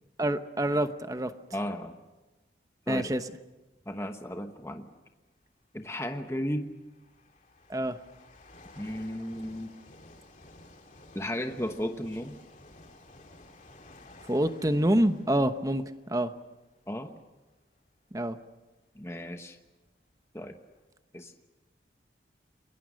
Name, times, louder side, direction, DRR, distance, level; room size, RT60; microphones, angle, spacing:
voice 1, 0.2-1.3 2.9-3.3 7.7-8.0 14.3-15.8 16.1-16.3 18.1-18.4, right 1 dB, 20° right, 10 dB, 0.9 m, -26 dB
voice 2, 1.5-2.0 2.9-3.0 3.9-4.9 5.7-6.7 8.7-9.7 11.1-12.4 16.9-17.1 18.9-19.6 20.3-20.5 21.1-21.3, equal, 15° left, 6 dB, 1.0 m, -34 dB
sound 1, 3.7-4.0 5.1-5.2 6.0-17.4 18.0-18.2 19.0-19.1 19.3-20.9, left 2 dB, 40° left, 2.6 m, -54 dB
30.0 x 22.0 x 6.4 m, 1.1 s
head